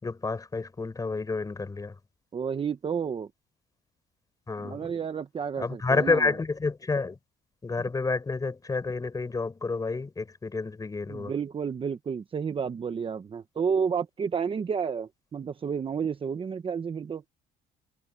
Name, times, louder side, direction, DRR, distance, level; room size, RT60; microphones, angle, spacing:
voice 1, 0.0-2.0 4.5-4.9 5.6-7.2 7.6-11.3, left 4 dB, 20° left, 5.4 m, -29 dB
voice 2, 2.3-3.3 4.6-6.3 11.1-17.2, right 6 dB, 30° right, 1.1 m, -31 dB
cardioid pair, 130°, 18 cm